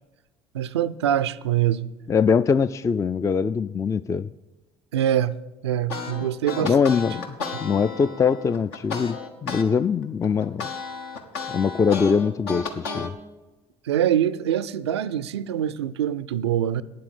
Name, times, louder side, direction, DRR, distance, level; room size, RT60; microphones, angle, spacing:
voice 1, 0.5-1.9 4.9-5.4 5.6-6.7 13.9-16.8, right 10 dB, 90° right, 0.4 m, -24 dB
voice 2, 2.1-4.3 6.6-10.7 11.5-13.1, left 6 dB, 25° left, 0.3 m, -22 dB
sound 1, 5.9-9.7 10.0-13.1, left 4 dB, 80° left, 1.3 m, -33 dB
9.2 x 7.6 x 8.8 m
hypercardioid pair, 60°, 14 cm